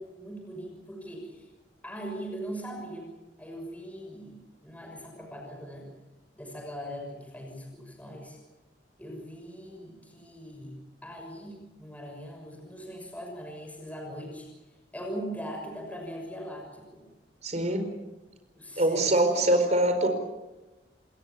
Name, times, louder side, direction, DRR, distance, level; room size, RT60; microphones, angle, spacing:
voice 1, 0.0-1.5 1.8-3.1 3.4-5.9 6.4-8.4 9.0-14.5 14.9-17.1 18.6-19.5, equal, 10° left, 1 dB, 6.4 m, -40 dB
voice 2, 17.4-17.9 18.8-20.1, right 1 dB, 40° right, 7 dB, 4.7 m, -23 dB
28.0 x 20.5 x 7.2 m, 1.1 s
head